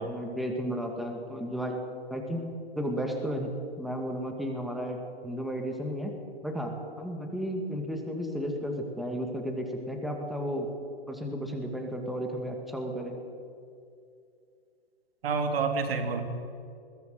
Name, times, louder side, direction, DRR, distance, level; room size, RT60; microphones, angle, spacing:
voice 1, 0.0-1.8 2.1-3.5 3.8-5.0 5.2-6.1 6.4-10.7 11.1-13.2, equal, ahead, 2 dB, 2.3 m, -33 dB
voice 2, 15.2-16.2, right 4 dB, 60° right, 6 dB, 3.2 m, -28 dB
21.0 x 16.5 x 7.9 m, 2.4 s
hypercardioid pair, 135°, 33 cm